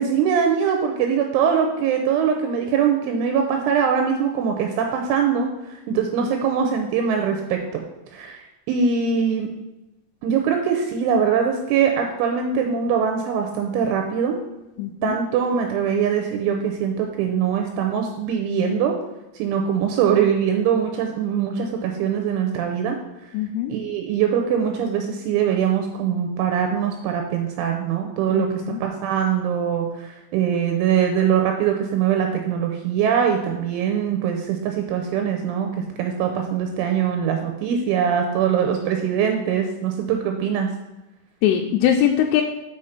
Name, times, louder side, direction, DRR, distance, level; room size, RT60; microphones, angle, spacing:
voice 1, 0.0-7.8 8.1-9.5 10.2-14.4 15.0-18.9 19.4-23.0 23.7-35.7 36.0-40.7, right 7 dB, 80° right, 3 dB, 3.0 m, -22 dB
voice 2, 14.8-15.2 23.3-23.7 28.3-28.8 41.4-42.4, left 10 dB, 85° left, 3 dB, 3.0 m, -21 dB
6.4 x 6.2 x 5.8 m, 1.0 s
omnidirectional pair, 5.8 m